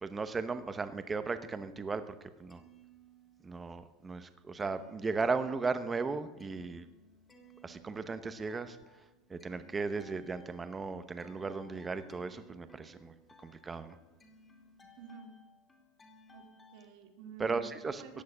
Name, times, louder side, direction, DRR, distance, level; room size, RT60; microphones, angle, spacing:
voice 1, 0.0-2.6 3.4-6.9 7.6-9.0 9.3-13.1 13.4-14.0 17.4-18.2, right 4 dB, 15° right, 11 dB, 0.9 m, -36 dB
sound 1, 2.5-3.7 4.0-16.9, equal, 15° left, 2.5 m, -61 dB
voice 2, 15.0-15.3 16.3-18.2, right 8 dB, 55° right, 4 dB, 2.9 m, -50 dB
15.0 x 8.4 x 9.7 m, 1.1 s
supercardioid pair, 140°, 0 cm